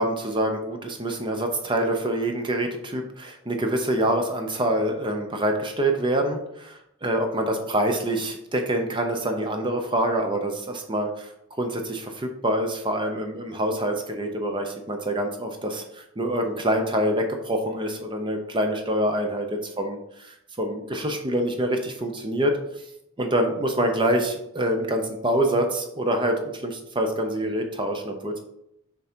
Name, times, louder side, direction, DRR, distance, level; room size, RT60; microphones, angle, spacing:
voice 1, 0.0-11.3 11.6-22.6 23.2-28.4, right 1 dB, 20° right, 4 dB, 0.6 m, -26 dB
6.8 x 3.7 x 4.4 m, 0.81 s
head